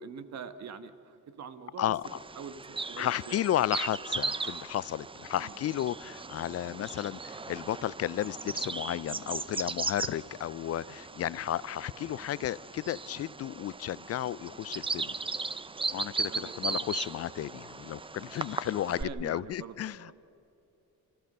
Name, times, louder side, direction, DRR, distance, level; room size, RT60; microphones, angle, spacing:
voice 1, 0.0-1.8 2.4-3.4 5.3-5.6 16.3-16.8 18.9-20.1, right 6 dB, 60° right, 11 dB, 1.4 m, -44 dB
voice 2, 1.8-2.2 3.0-15.2 15.9-20.1, left 12 dB, 55° left, 20 dB, 0.5 m, -33 dB
Bird vocalization bird call bird song, 2.0-19.0, right 4 dB, 15° right, 0.6 m, -37 dB
29.5 x 14.0 x 6.6 m, 2.9 s
cardioid pair, 90°, 30 cm